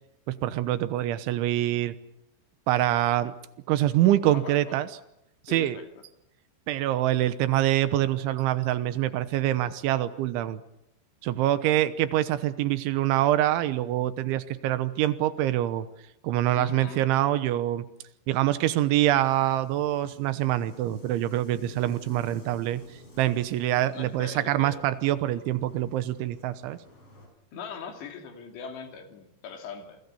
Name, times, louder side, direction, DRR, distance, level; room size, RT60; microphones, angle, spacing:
voice 1, 0.3-1.9 2.7-3.3 3.7-4.9 5.5-5.8 6.7-10.6 11.2-15.9 16.2-17.8 18.3-22.8 23.2-26.8, right 13 dB, 80° right, 13 dB, 3.4 m, -25 dB
voice 2, 4.3-4.7 5.5-5.9 16.5-17.1 23.9-24.8 27.5-30.0, left 6 dB, 65° left, 4 dB, 4.9 m, -41 dB
sound 1, 19.1-27.3, left 1 dB, 30° left, 6.8 m, -51 dB
28.0 x 22.0 x 7.0 m, 0.82 s
omnidirectional pair, 5.4 m